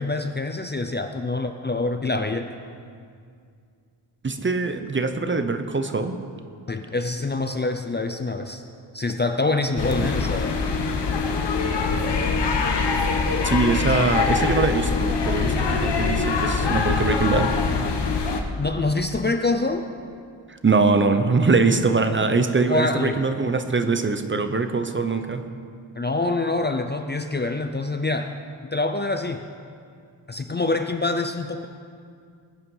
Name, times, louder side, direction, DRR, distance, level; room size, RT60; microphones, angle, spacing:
voice 1, 0.0-2.5 6.7-8.6 8.9-10.7 14.0-14.1 18.6-19.8 22.6-23.2 25.9-28.3 28.7-29.5 30.3-31.7, left 3 dB, 25° left, 7 dB, 0.5 m, -25 dB
voice 2, 4.2-6.2 13.4-17.5 20.5-25.4, right 4 dB, 25° right, 8 dB, 0.6 m, -22 dB
sound 1, 9.8-18.4, left 4 dB, 65° left, 1.2 m, -23 dB
20.0 x 8.7 x 5.5 m, 2.3 s
wide cardioid pair, 180°, 44 cm